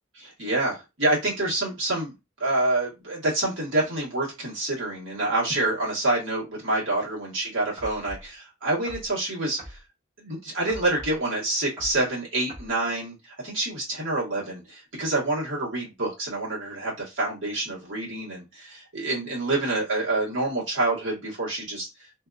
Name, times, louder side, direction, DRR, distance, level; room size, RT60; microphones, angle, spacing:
voice 1, 0.1-2.1 2.4-9.8 10.2-21.9, right 2 dB, 65° right, -5 dB, 1.4 m, -27 dB
sound 1, 7.8-8.3 8.9-9.1 9.6-9.8 10.7-11.2 11.8-12.0 12.5-12.7, equal, 15° right, 1.4 m, -41 dB
2.6 x 2.4 x 2.3 m, 0.25 s
head